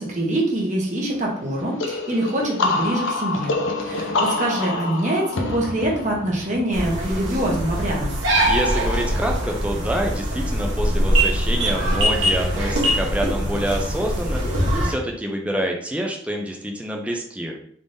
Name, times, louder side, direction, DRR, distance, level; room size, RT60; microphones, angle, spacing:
voice 1, 0.0-3.5 3.8-8.1, right 1 dB, 35° right, -2 dB, 0.9 m, -24 dB
sound 1, 1.8-7.3, left 3 dB, 70° left, 0.6 m, -26 dB
sound 2, 6.7-14.9, equal, 70° right, 0.9 m, -22 dB
voice 2, 8.5-17.6, right 1 dB, 5° right, 1 dB, 0.4 m, -27 dB
3.5 x 3.4 x 2.6 m, 0.63 s
head